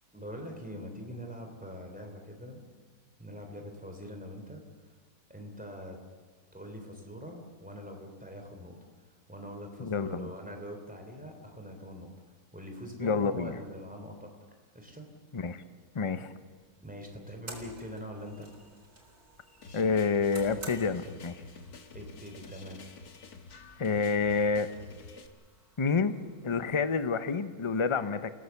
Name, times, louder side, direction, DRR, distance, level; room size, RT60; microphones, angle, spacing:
voice 1, 0.1-2.7 3.2-4.6 5.3-6.0 6.5-8.8 9.3-12.1 12.5-14.3 14.7-15.1 16.8-18.5 21.9-22.8, equal, 5° right, 3 dB, 3.3 m, -43 dB
voice 2, 9.8-10.3 13.0-13.6 15.3-15.6 15.9-16.3 19.7-21.3 23.8-24.7 25.8-26.1 26.4-28.3, left 5 dB, 25° left, 11 dB, 0.7 m, -28 dB
sound 1, 16.5-27.1, right 2 dB, 80° right, 4.5 m, -53 dB
sound 2, 19.6-25.3, left 4 dB, 85° left, 1.9 m, -49 dB
30.0 x 16.5 x 7.2 m, 1.5 s
omnidirectional pair, 1.6 m